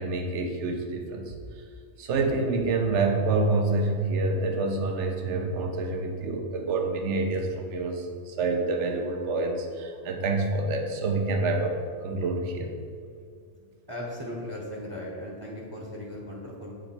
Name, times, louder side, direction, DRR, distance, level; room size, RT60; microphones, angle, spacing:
voice 1, 0.0-1.6 2.0-11.8 12.0-12.7, right 3 dB, 70° right, 4 dB, 1.1 m, -27 dB
voice 2, 13.9-16.8, left 1 dB, 20° right, -4 dB, 0.9 m, -37 dB
7.9 x 4.4 x 4.3 m, 2.2 s
omnidirectional pair, 1.3 m